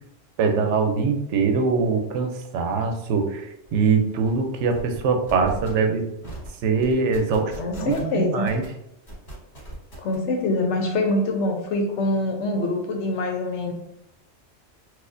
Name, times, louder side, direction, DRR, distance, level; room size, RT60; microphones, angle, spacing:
voice 1, 0.4-6.0 6.6-8.6, right 5 dB, 80° right, 5 dB, 0.9 m, -23 dB
sound 1, 3.6-3.8 4.1-4.3 4.7-5.0 5.3-5.7 6.2-6.5 6.8-8.1 8.5-8.7 9.1-10.1, right 1 dB, 50° left, 1.8 m, -38 dB
voice 2, 7.6-8.5 10.0-13.7, left 2 dB, 85° left, 3 dB, 1.0 m, -24 dB
4.2 x 2.4 x 2.5 m, 0.81 s
omnidirectional pair, 1.2 m